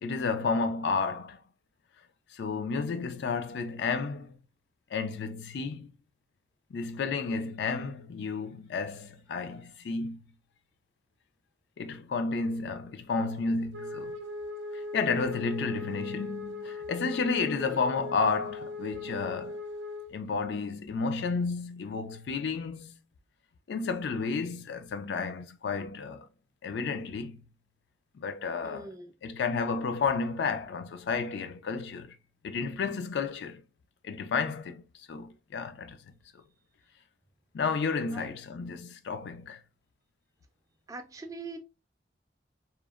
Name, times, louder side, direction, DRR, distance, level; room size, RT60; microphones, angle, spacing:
voice 1, 0.0-1.4 2.3-4.4 4.9-5.9 6.7-10.2 11.8-14.1 14.9-19.6 20.1-23.0 23.7-26.3 26.6-27.3 28.1-28.9 29.2-32.1 32.4-33.6 34.0-34.8 35.1-36.0 37.5-39.6, left 4 dB, 75° left, 0.3 m, -31 dB
Wind instrument woodwind instrument, 13.7-20.1, left 2 dB, 90° right, 0.5 m, -39 dB
voice 2, 17.4-17.8 28.6-29.1 38.1-38.3 40.9-41.6, right 3 dB, 20° right, 0.3 m, -43 dB
2.8 x 2.0 x 2.3 m
head